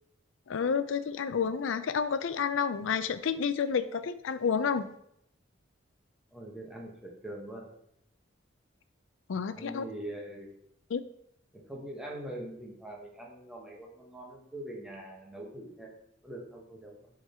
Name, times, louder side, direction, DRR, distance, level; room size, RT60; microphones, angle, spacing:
voice 1, 0.5-4.9 9.3-9.8 10.9-11.0, left 6 dB, 85° left, 13 dB, 0.4 m, -30 dB
voice 2, 6.3-7.7 9.5-10.5 11.5-16.0 16.2-17.1, right 1 dB, 5° right, -2 dB, 1.3 m, -43 dB
7.1 x 3.8 x 4.4 m, 0.73 s
head